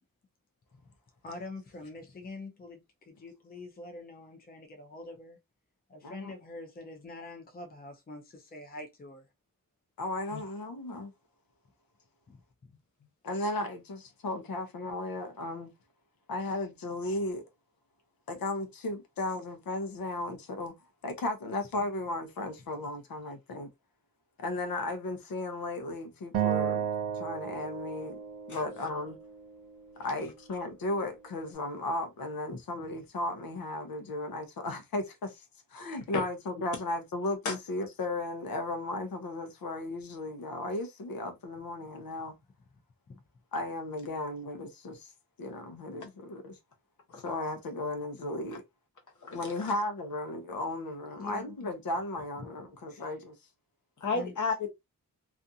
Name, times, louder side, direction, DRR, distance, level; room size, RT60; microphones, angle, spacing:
voice 1, 1.2-5.4 5.9-9.3 12.3-12.7 32.5-32.6 43.1-43.2 51.2-51.5 52.4-52.5 52.9-53.1 54.1-54.3, left 2 dB, 25° left, 0.5 m, -45 dB
voice 2, 10.0-11.1 13.2-15.7 16.3-17.4 18.3-20.8 21.0-23.7 24.4-26.8 27.1-28.2 28.5-29.2 30.0-35.4 35.7-42.4 43.5-45.1 45.4-46.6 47.2-48.6 49.3-53.4 54.2-54.3, left 2 dB, 85° left, 0.7 m, -35 dB
Acoustic guitar, 26.3-29.6, right 9 dB, 80° right, 0.5 m, -33 dB
voice 3, 49.2-49.7 54.0-54.7, left 4 dB, 60° left, 0.9 m, -32 dB
2.5 x 2.4 x 2.6 m
wide cardioid pair, 165°, 34 cm